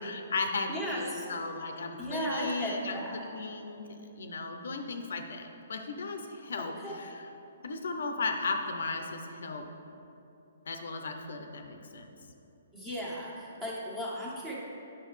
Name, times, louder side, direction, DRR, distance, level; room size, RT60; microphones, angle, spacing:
voice 1, 0.0-3.0 3.3-7.3 7.6-9.7 10.7-12.1, left 3 dB, 75° left, 5 dB, 0.6 m, -36 dB
voice 2, 0.7-1.3 2.0-3.3 6.6-6.9 12.7-14.5, equal, 10° right, -6 dB, 1.5 m, -36 dB
8.3 x 5.8 x 3.2 m, 2.9 s
hypercardioid pair, 140°, 0 cm